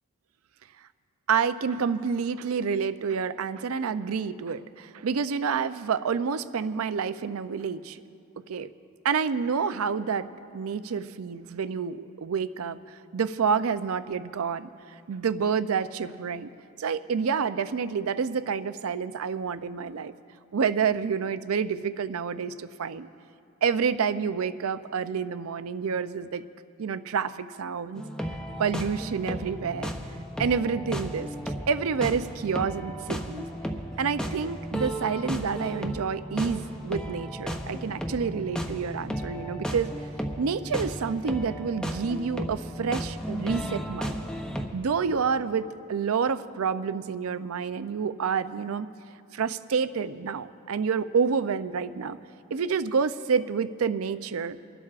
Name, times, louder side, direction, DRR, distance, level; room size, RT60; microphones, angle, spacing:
voice 1, 1.3-8.0 8.5-8.7 9.0-10.3 10.5-12.8 13.1-14.7 15.1-16.5 16.8-20.1 20.5-23.1 23.6-26.4 26.8-28.0 28.6-29.9 30.4-31.3 31.7-33.5 34.0-39.9 40.4-44.2 44.7-48.9 49.3-52.2 52.5-54.6, right 6 dB, 90° right, 13 dB, 0.5 m, -28 dB
sound 1, 27.9-44.7, equal, 5° left, 0.6 m, -34 dB
28.5 x 12.0 x 2.5 m, 2.4 s
head